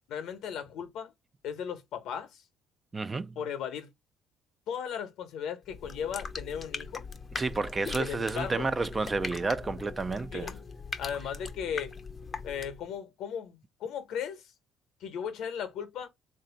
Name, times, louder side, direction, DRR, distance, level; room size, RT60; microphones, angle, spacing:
voice 1, 0.1-1.1 1.4-2.4 3.4-3.9 4.7-7.1 7.9-8.7 10.3-10.6 11.0-11.9 12.4-14.5 15.0-16.1, left 8 dB, 70° left, 0.9 m, -36 dB
voice 2, 2.9-3.4 7.3-10.5, right 3 dB, 25° right, 0.4 m, -31 dB
sound 1, 5.6-12.9, left 5 dB, 35° left, 0.6 m, -41 dB
3.3 x 2.6 x 3.9 m
supercardioid pair, 80°, 0 cm